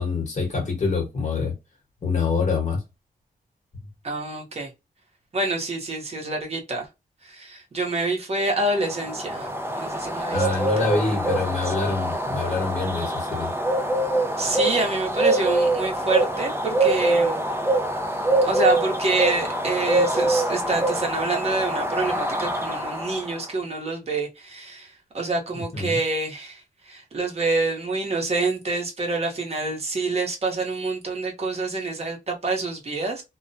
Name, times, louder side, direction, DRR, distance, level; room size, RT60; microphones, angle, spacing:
voice 1, 0.0-1.5 2.0-2.8 10.3-13.5 25.5-26.0, left 4 dB, 50° left, 1.1 m, -26 dB
voice 2, 4.0-4.7 5.3-6.9 7.2-11.3 11.6-11.7 14.4-17.4 18.4-33.2, right 3 dB, 45° right, 0.9 m, -27 dB
sound 1, 8.7-23.3, right 1 dB, 15° right, 0.5 m, -24 dB
2.4 x 2.1 x 2.6 m
wide cardioid pair, 155°, 16 cm